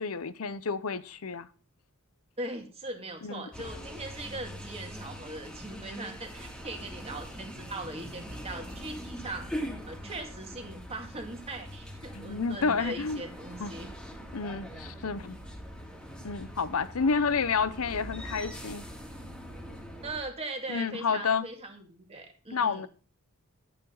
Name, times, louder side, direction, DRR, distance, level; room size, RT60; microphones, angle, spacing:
voice 1, 0.0-1.5 3.2-3.5 12.1-13.2 13.6-13.7 14.3-15.4 16.2-18.8 20.7-21.5 22.5-22.9, left 5 dB, 90° left, 0.8 m, -30 dB
voice 2, 2.4-9.5 9.8-13.9 20.0-22.9, right 2 dB, 30° right, 2.2 m, -40 dB
sound 1, 3.5-20.2, equal, 5° left, 2.4 m, -42 dB
11.5 x 9.0 x 3.9 m
head